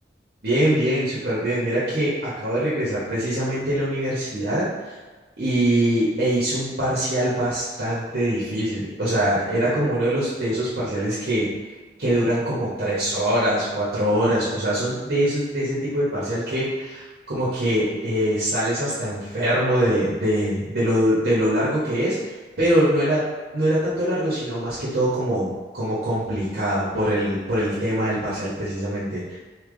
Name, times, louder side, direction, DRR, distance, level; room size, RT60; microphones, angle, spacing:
voice 1, 0.4-4.7 5.4-11.5 12.0-22.2 22.6-23.2 23.5-29.4, right 1 dB, 70° right, -10 dB, 1.2 m, -23 dB
3.3 x 2.8 x 3.8 m, 1.3 s
head